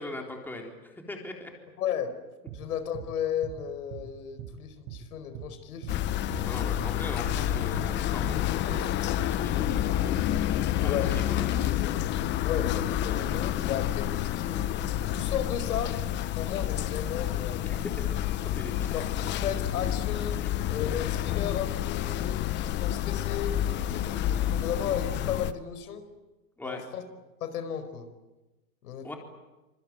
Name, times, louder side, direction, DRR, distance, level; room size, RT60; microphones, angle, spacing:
voice 1, 0.0-1.5 6.3-9.9 10.8-10.9 11.3-11.5 17.6-19.0 26.6-26.8 29.0-29.2, left 1 dB, 5° left, 1 dB, 4.0 m, -40 dB
voice 2, 1.8-2.2 2.5-5.9 10.8-11.7 12.4-14.7 15.1-15.9 16.3-17.9 18.9-20.4 20.7-23.6 23.9-26.0 26.6-27.0 27.4-28.1 28.8-29.2, left 8 dB, 70° left, 10 dB, 5.0 m, -34 dB
sound 1, 2.5-2.6 2.9-3.1 3.4-3.6 3.9-4.1 4.4-4.5 4.9-5.0 5.3-5.5 5.8-6.0 6.3-6.5 6.8-6.9 7.3-7.4 7.7-7.9 8.2-8.4 8.7-8.9 9.2-9.3 9.7-9.8, right 11 dB, 45° right, 7.2 m, -41 dB
sound 2, 5.9-25.5, left 12 dB, 25° left, 1.0 m, -29 dB
26.0 x 24.0 x 9.1 m, 1.1 s
hypercardioid pair, 130°, 46 cm